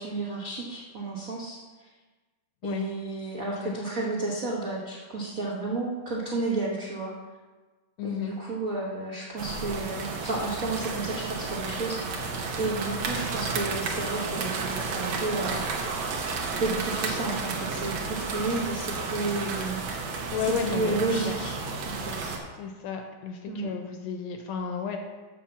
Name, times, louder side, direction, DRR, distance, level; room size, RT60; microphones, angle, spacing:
voice 1, 0.0-1.9 2.6-7.1 8.0-15.6 16.6-19.8 20.4-21.6 21.8-22.4 23.5-23.7, right 3 dB, 85° right, -4 dB, 0.7 m, -32 dB
voice 2, 8.0-8.3 20.3-21.0 22.6-25.0, left 7 dB, 75° left, 4 dB, 1.7 m, -32 dB
sound 1, 9.4-22.4, right 4 dB, 65° right, 2.0 m, -32 dB
7.4 x 5.6 x 7.0 m, 1.3 s
omnidirectional pair, 3.5 m